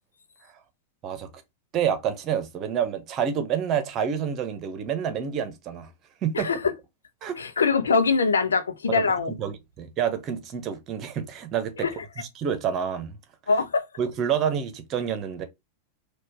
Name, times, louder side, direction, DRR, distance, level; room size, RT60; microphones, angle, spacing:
voice 1, 1.7-5.9 6.2-6.5 7.2-7.4 8.9-11.9 12.2-13.2 14.0-15.4, right 8 dB, 35° right, 1.0 m, -28 dB
voice 2, 6.3-6.7 7.4-9.3 11.8-11.9 13.5-13.8, left 4 dB, 70° left, 0.7 m, -23 dB
4.4 x 2.5 x 4.5 m
figure-of-eight pair, 90°, 0 cm